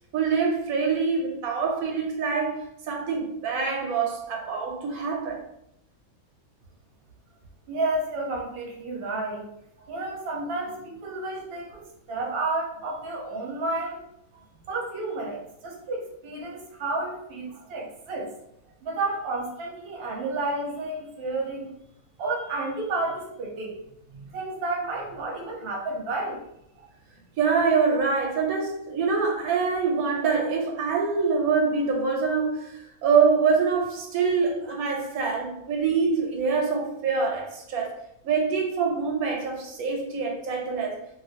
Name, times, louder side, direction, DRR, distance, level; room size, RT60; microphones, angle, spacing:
voice 1, 0.1-2.6 2.9-5.4 27.4-37.9 38.2-41.0, right 5 dB, 80° right, 0 dB, 1.1 m, -25 dB
voice 2, 7.7-9.5 9.9-14.0 14.7-18.3 18.8-21.7 22.2-23.8 24.1-26.4, right 2 dB, 50° right, -2 dB, 0.8 m, -31 dB
2.5 x 2.4 x 2.6 m, 0.78 s
omnidirectional pair, 1.5 m